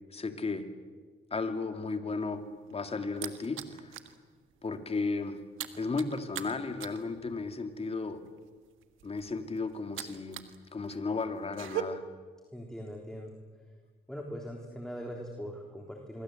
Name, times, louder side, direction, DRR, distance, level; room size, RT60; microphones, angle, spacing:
voice 1, 0.1-0.7 1.3-2.4 2.7-3.9 4.6-5.4 5.8-8.2 9.0-10.5 10.7-12.0, left 3 dB, 30° left, 7 dB, 2.7 m, -34 dB
sound 1, 2.4-4.2 4.5-4.7 5.0-10.6 10.9-11.8, right 14 dB, 85° right, 1.6 m, -41 dB
voice 2, 12.5-13.3 14.1-16.2, equal, 5° left, 1 dB, 3.5 m, -41 dB
25.5 x 23.5 x 7.9 m, 1.5 s
cardioid pair, 90°, 20 cm